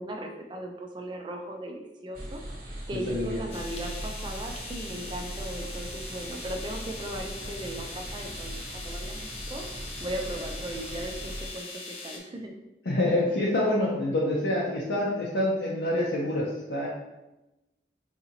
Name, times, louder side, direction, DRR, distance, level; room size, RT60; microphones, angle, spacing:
voice 1, 0.0-2.4 2.9-9.6 10.0-12.5, right 1 dB, 25° right, 2 dB, 0.3 m, -37 dB
sound 1, 2.1-11.5, right 1 dB, 55° right, 0.7 m, -39 dB
voice 2, 2.9-3.4 12.8-16.9, left 1 dB, 85° left, -6 dB, 0.6 m, -27 dB
sound 2, 3.5-12.2, left 3 dB, 35° left, 0.5 m, -41 dB
3.8 x 2.7 x 2.8 m, 1.0 s
head